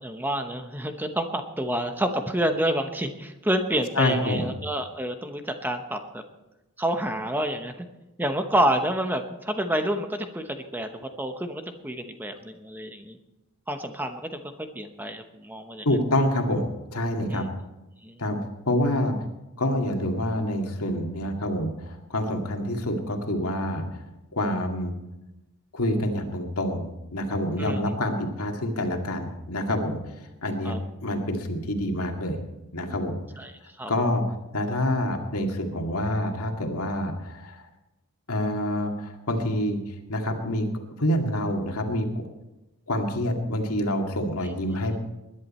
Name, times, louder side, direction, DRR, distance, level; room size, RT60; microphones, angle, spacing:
voice 1, 0.0-6.2 6.8-7.9 8.2-13.2 13.7-15.9 17.3-17.5 18.0-18.2 27.6-27.8 30.6-30.8 33.4-33.5 33.8-33.9, right 1 dB, 10° right, 6 dB, 0.9 m, -28 dB
voice 2, 4.0-4.5 15.9-17.5 18.2-18.4 18.7-19.1 19.6-24.0 24.3-24.9 25.7-30.0 30.4-30.7 31.0-32.4 32.7-33.2 33.9-34.2 34.5-37.6 38.3-39.8 40.1-40.7 41.0-42.2 42.9-45.0, left 1 dB, 90° left, 2 dB, 2.2 m, -27 dB
20.5 x 11.0 x 4.3 m, 0.98 s
head